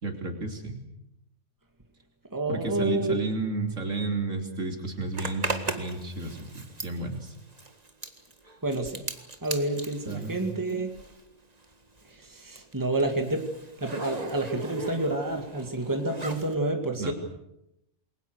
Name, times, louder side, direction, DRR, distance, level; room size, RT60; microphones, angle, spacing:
voice 1, 0.0-0.8 2.5-7.4 10.1-10.4 17.0-17.1, right 3 dB, 70° right, 3 dB, 3.7 m, -32 dB
voice 2, 2.3-3.3 8.6-9.0 9.4-10.9 12.3-13.4 13.8-17.1, right 2 dB, 15° right, 4 dB, 2.4 m, -29 dB
Zipper (clothing), 5.1-11.3 11.6-16.5, right 2 dB, 30° right, 1.8 m, -38 dB
28.5 x 22.0 x 6.5 m, 0.84 s
omnidirectional pair, 1.4 m